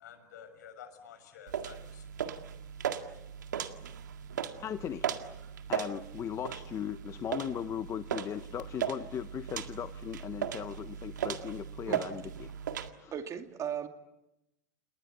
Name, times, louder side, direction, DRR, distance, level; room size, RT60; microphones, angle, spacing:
voice 1, 0.0-2.5, left 8 dB, 75° left, 9 dB, 6.2 m, -51 dB
sound 1, 1.5-12.9, right 8 dB, 90° right, 1.9 m, -37 dB
voice 2, 4.6-5.1 5.7-12.5 13.0-13.1, left 9 dB, 30° left, 11 dB, 0.9 m, -38 dB
voice 3, 13.1-13.9, right 8 dB, 35° right, 6 dB, 2.5 m, -37 dB
29.5 x 20.0 x 8.2 m, 0.89 s
hypercardioid pair, 105°, 10 cm